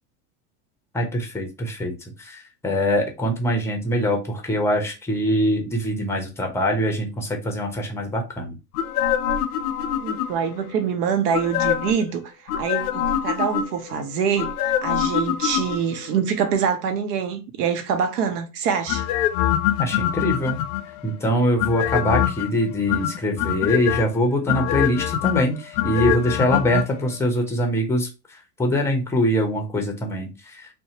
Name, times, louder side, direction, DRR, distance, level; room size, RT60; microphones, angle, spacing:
voice 1, 0.9-1.9 2.2-8.5 19.8-20.6 21.0-28.1 28.6-30.7, equal, 5° left, 0.6 m, -23 dB
sound 1, 8.7-10.6 11.3-12.0 12.5-13.9 14.4-16.1 18.9-21.0 21.6-22.5 22.9-24.0 24.5-26.8 27.1-27.2, left 10 dB, 65° left, 0.5 m, -24 dB
voice 2, 10.0-12.2 12.6-19.1, right 7 dB, 75° right, 0.8 m, -25 dB
2.7 x 2.2 x 2.7 m
hypercardioid pair, 100°, 48 cm